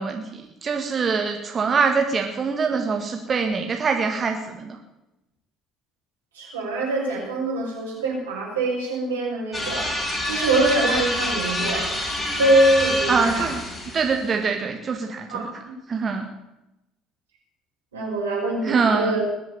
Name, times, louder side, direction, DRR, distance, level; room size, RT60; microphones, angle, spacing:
voice 1, 0.0-4.8 13.1-13.6 13.9-15.5 15.9-16.3 18.6-19.2, right 5 dB, 40° right, 4 dB, 2.0 m, -24 dB
voice 2, 6.3-9.9 10.3-11.9 12.4-13.5 15.3-15.4 17.9-19.2, right 2 dB, 90° right, -3 dB, 5.8 m, -23 dB
sound 1, 9.5-14.2, left 1 dB, 15° left, 7.1 m, -27 dB
20.5 x 7.5 x 8.8 m, 0.93 s
hypercardioid pair, 60°, 0 cm